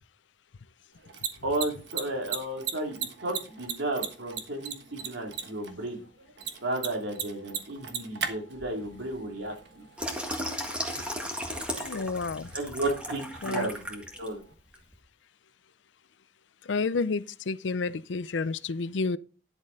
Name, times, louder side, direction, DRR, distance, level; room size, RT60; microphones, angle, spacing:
Mechanisms, 0.9-14.5, right 7 dB, 70° right, 1.4 m, -40 dB
voice 1, 1.4-6.0 6.6-9.8 12.5-14.4, right 1 dB, 85° right, 3.0 m, -33 dB
Water tap faucet / Sink (filling or washing), 10.0-14.3 14.7-14.9, equal, 5° right, 1.7 m, -35 dB
voice 2, 11.8-12.5 13.4-13.7 16.6-19.2, left 4 dB, 80° left, 0.6 m, -30 dB
11.0 x 7.4 x 4.0 m
head